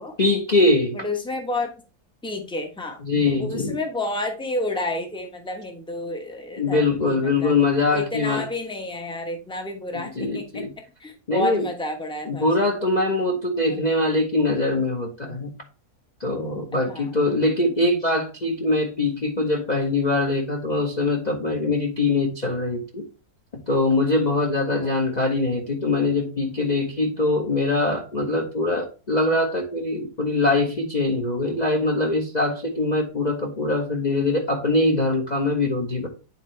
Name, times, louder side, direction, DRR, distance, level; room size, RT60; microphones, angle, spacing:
voice 1, 0.2-1.0 3.0-3.8 6.6-8.4 10.1-10.7 11.3-11.6 12.3-15.5 16.2-23.0 23.5-36.1, left 2 dB, 30° left, -1 dB, 1.0 m, -23 dB
voice 2, 0.9-1.8 2.2-3.0 3.4-7.5 7.9-10.6 11.0-12.5 13.7-13.8 14.7-14.9 16.7-17.1 24.7-25.0, left 2 dB, 5° left, 4 dB, 0.9 m, -30 dB
9.6 x 4.3 x 3.3 m, 0.33 s
omnidirectional pair, 1.7 m